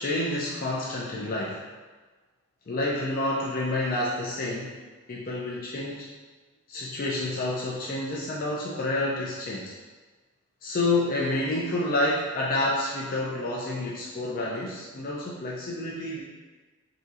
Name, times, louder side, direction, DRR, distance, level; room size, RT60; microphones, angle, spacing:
voice 1, 0.0-1.6 2.7-4.7 5.1-6.1 6.7-9.7 10.6-16.2, left 2 dB, 40° left, -4 dB, 0.4 m, -29 dB
4.1 x 2.7 x 2.4 m, 1.3 s
head